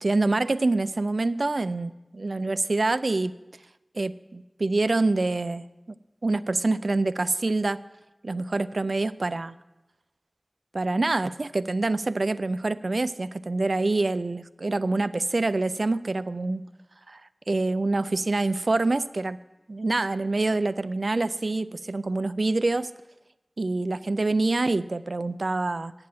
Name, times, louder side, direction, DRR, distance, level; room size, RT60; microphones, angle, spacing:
voice 1, 0.0-3.4 3.9-5.7 6.2-7.8 8.2-9.5 10.7-16.6 17.1-17.2 17.5-19.4 19.7-22.9 23.6-25.9, right 2 dB, 80° right, 15 dB, 0.3 m, -26 dB
9.6 x 7.5 x 7.4 m, 1.0 s
wide cardioid pair, 45°, 0 cm